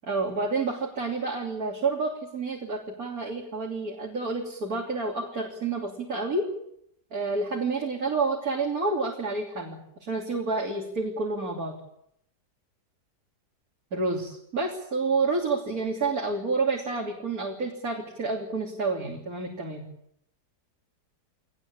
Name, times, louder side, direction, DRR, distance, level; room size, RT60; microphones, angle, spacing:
voice 1, 0.1-6.5 7.1-11.7 13.9-19.8, right 3 dB, 60° right, -1 dB, 3.7 m, -29 dB
23.0 x 19.5 x 8.7 m, 0.74 s
omnidirectional pair, 1.8 m